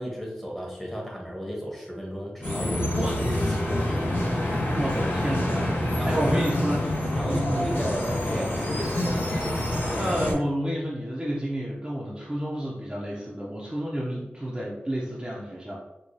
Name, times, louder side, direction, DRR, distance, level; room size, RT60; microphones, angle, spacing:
voice 1, 0.0-3.1 3.5-4.0 6.0-6.3 7.1-9.2, equal, 5° left, -2 dB, 1.0 m, -34 dB
sound 1, 2.4-10.3, left 1 dB, 55° left, 1.1 m, -27 dB
voice 2, 4.8-7.8 10.0-15.8, equal, 20° right, -5 dB, 0.5 m, -30 dB
4.6 x 2.2 x 2.7 m, 1.0 s
wide cardioid pair, 90°, 4 cm